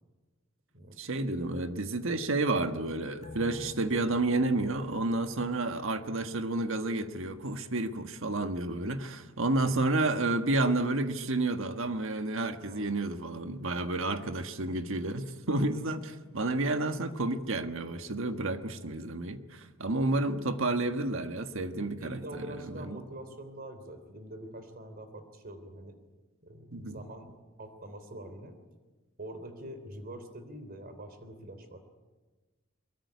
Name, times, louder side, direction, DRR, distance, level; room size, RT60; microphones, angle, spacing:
voice 1, 1.0-23.0 26.7-27.0, right 2 dB, 65° right, 8 dB, 1.6 m, -30 dB
sound 1, 3.2-6.1 6.5-6.6, left 1 dB, 35° left, 5.2 m, -50 dB
voice 2, 22.0-26.0 26.4-27.3 27.6-28.6 29.2-31.8, right 1 dB, 45° right, 9 dB, 3.5 m, -44 dB
23.0 x 22.5 x 9.6 m, 1.3 s
head